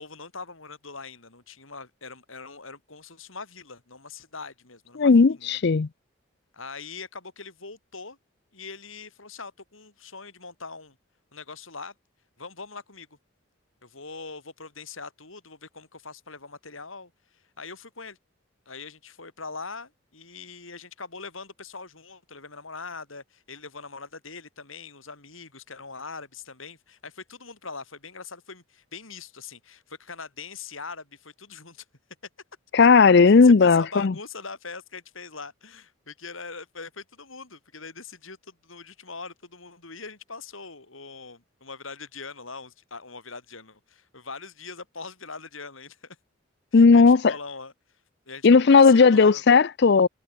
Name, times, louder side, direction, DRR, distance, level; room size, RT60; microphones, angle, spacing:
voice 1, 0.0-5.6 6.5-8.2 8.5-11.0 11.3-11.9 12.4-13.1 13.8-18.2 18.7-31.8 33.2-46.2 46.7-47.7 48.3-49.4, left 4 dB, 80° left, 6.5 m, -42 dB
voice 2, 5.0-5.9 32.7-34.1 46.7-47.3 48.4-50.1, left 4 dB, 55° left, 0.5 m, -16 dB
head